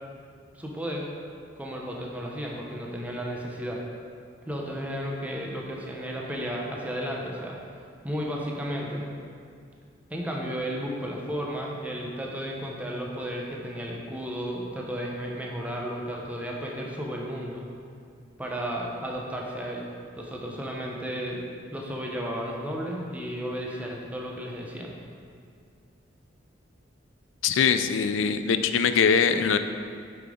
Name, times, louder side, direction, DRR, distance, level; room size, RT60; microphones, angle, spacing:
voice 1, 0.5-1.1 1.6-3.8 4.5-7.6 8.0-9.1 10.1-17.7 18.4-19.9 20.2-24.9, equal, 10° right, -2 dB, 0.7 m, -33 dB
voice 2, 27.4-29.6, left 6 dB, 90° left, 9 dB, 0.4 m, -22 dB
6.8 x 6.6 x 3.7 m, 2.3 s
head